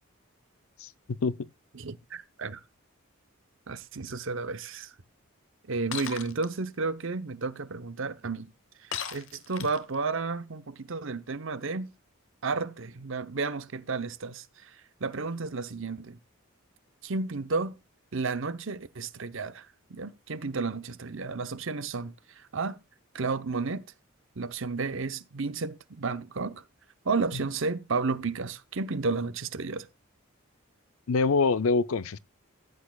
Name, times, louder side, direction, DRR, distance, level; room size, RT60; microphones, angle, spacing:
voice 1, 0.8-1.4 31.1-32.2, left 4 dB, 75° left, 0.5 m, -25 dB
voice 2, 1.7-2.6 3.7-4.9 5.7-8.5 8.8-11.9 12.4-14.7 15.0-16.2 17.0-17.8 18.1-22.8 23.1-23.9 24.4-26.6 27.0-29.9, right 4 dB, 65° right, 0.8 m, -32 dB
Shatter, 5.9-6.5 8.9-9.9, left 8 dB, 60° left, 1.0 m, -36 dB
14.5 x 8.5 x 2.3 m
head